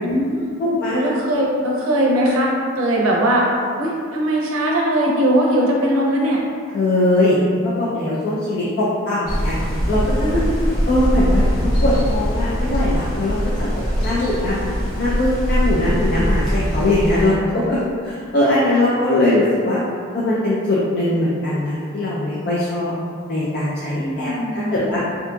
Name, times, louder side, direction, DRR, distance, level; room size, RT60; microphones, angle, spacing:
voice 1, 0.0-0.5 0.9-2.5 2.8-3.5 3.8-6.4 10.1-10.7 24.0-25.1, right 1 dB, 90° right, -2 dB, 0.5 m, -20 dB
voice 2, 0.6-1.1 6.7-9.5 9.9-10.0 10.3-10.4 10.9-11.4 11.8-17.8 18.0-19.8 20.1-22.9 23.3-25.0, left 1 dB, 50° left, -8 dB, 0.3 m, -20 dB
sound 1, 9.3-17.3, equal, 75° left, 1.0 m, -21 dB
2.7 x 2.5 x 2.2 m, 2.2 s
head